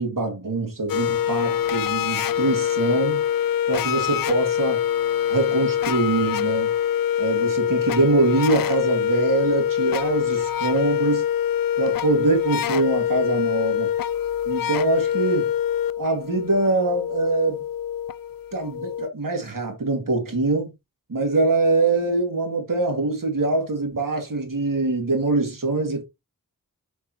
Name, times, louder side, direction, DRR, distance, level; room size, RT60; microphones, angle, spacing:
voice 1, 0.0-3.2 3.7-4.8 5.3-6.7 7.2-11.2 11.8-13.9 14.5-15.5 16.0-17.6 18.5-20.7 21.1-26.0, right 3 dB, 70° right, 2.6 m, -23 dB
sound 1, 0.9-19.1, left 10 dB, 75° left, 0.5 m, -24 dB
6.1 x 5.2 x 3.1 m
wide cardioid pair, 70°, 34 cm